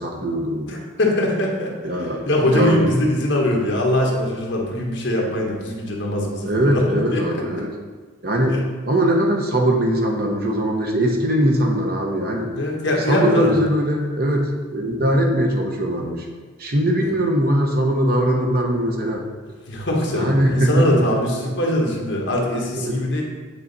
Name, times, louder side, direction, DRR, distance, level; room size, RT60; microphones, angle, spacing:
voice 1, 0.0-0.7 1.8-2.2 2.5-2.9 6.4-7.7 8.2-12.5 13.1-16.3 16.6-19.2 20.1-21.2 22.7-22.9, right 1 dB, 50° right, 1 dB, 1.0 m, -21 dB
voice 2, 0.7-7.3 8.5-8.6 12.5-13.5 19.7-23.2, left 1 dB, 65° left, -1 dB, 1.4 m, -22 dB
8.7 x 4.0 x 4.1 m, 1.4 s
head